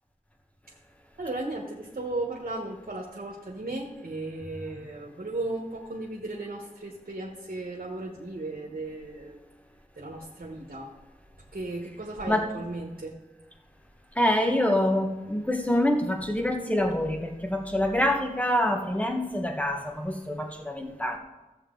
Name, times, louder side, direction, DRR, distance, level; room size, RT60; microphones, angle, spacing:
voice 1, 1.2-9.4 10.0-10.9 11.5-13.2, right 2 dB, 80° right, -2 dB, 1.2 m, -35 dB
voice 2, 14.1-21.2, left 1 dB, 10° left, 3 dB, 1.4 m, -26 dB
14.5 x 7.9 x 3.8 m, 1.1 s
wide cardioid pair, 45°, 15 cm